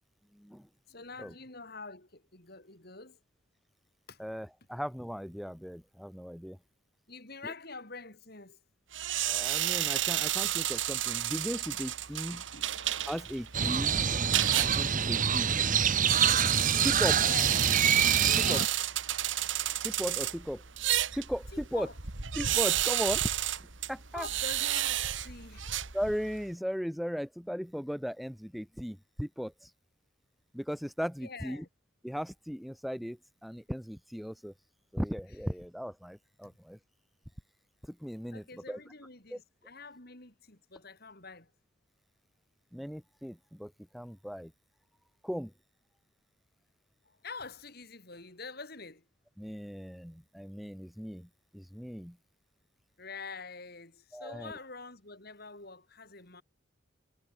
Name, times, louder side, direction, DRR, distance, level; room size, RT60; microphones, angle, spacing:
voice 1, 0.3-0.7 1.2-1.3 4.2-6.6 7.4-7.5 9.3-12.4 13.1-13.9 14.5-15.5 16.8-17.2 18.5-18.6 19.8-20.6 21.1-21.9 22.3-23.3 23.9-24.3 25.9-29.7 30.5-31.6 32.0-34.5 34.9-36.8 37.8-38.8 39.3-39.4 42.7-44.5 45.2-45.5 49.4-51.3 51.5-52.2 54.1-54.5, equal, ahead, 1.2 m, -37 dB
voice 2, 0.9-3.2 4.1-4.2 7.1-8.6 12.2-12.7 17.2-17.5 18.2-18.8 21.5-21.9 24.1-25.7 31.2-31.7 36.4-36.5 38.3-41.5 47.0-49.0 53.0-56.4, left 4 dB, 50° left, 4.8 m, -46 dB
sound 1, 8.9-26.4, right 12 dB, 70° right, 2.1 m, -32 dB
Crow, 13.5-18.7, right 8 dB, 40° right, 1.1 m, -26 dB
head